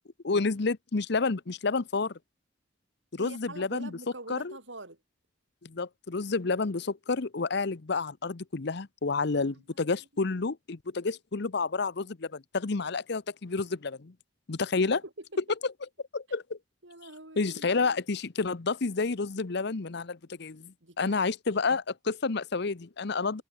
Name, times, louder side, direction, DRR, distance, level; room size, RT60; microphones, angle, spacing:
voice 1, 0.2-2.1 3.2-3.9 4.3-4.6 5.6-14.1 14.5-15.0 15.6-15.7 16.1-16.6 17.4-23.4, left 4 dB, 60° left, 0.8 m, -30 dB
voice 2, 3.2-5.0 9.3-10.4 15.0-15.6 16.8-17.7 20.8-21.2 23.1-23.4, right 2 dB, 75° right, 7.7 m, -46 dB
head